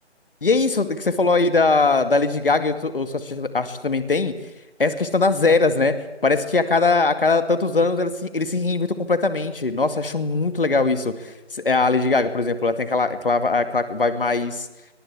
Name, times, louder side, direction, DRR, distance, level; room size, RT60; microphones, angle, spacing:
voice 1, 0.4-4.3 4.8-5.9 6.2-14.7, left 3 dB, 50° left, 10 dB, 2.3 m, -21 dB
23.0 x 23.0 x 8.5 m, 1.0 s
figure-of-eight pair, 155°, 35 cm